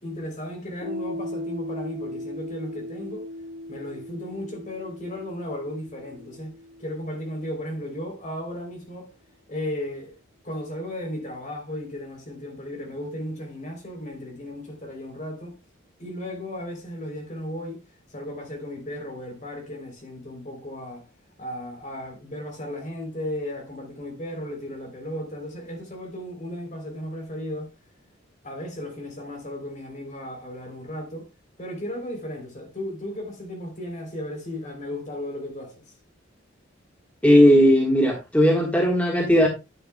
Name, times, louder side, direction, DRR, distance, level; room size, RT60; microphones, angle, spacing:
voice 1, 0.0-3.3 3.7-9.1 9.5-10.1 10.4-15.6 16.0-17.8 18.1-21.1 21.4-27.7 28.4-31.3 31.6-35.7, left 1 dB, 40° left, 3.5 m, -35 dB
Piano, 0.8-8.1, left 1 dB, 25° left, 2.7 m, -38 dB
voice 2, 37.2-39.5, equal, 5° left, 1.5 m, -17 dB
9.9 x 9.2 x 2.3 m
head